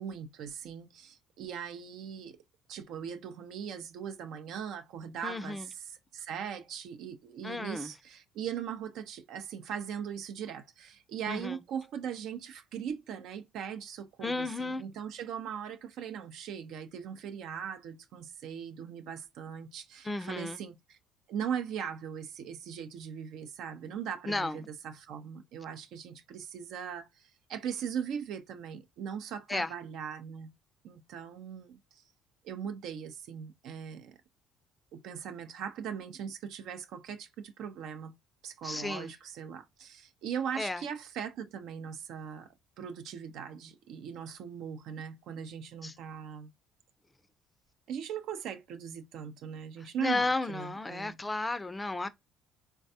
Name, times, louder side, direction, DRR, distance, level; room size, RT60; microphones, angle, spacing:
voice 1, 0.0-2.4 2.7-21.0 21.3-30.5 30.8-32.0 32.4-34.2 34.9-38.1 38.4-42.5 42.8-46.5 47.9-51.2, right 8 dB, 70° right, 0.5 m, -40 dB
voice 2, 5.2-5.7 7.4-7.9 11.3-11.6 14.2-14.8 20.0-20.6 24.3-24.6 29.5-29.7 38.6-39.1 40.6-40.8 45.8-45.9 50.0-52.1, left 2 dB, 15° left, 0.4 m, -33 dB
3.3 x 2.1 x 2.6 m
supercardioid pair, 85°, 0 cm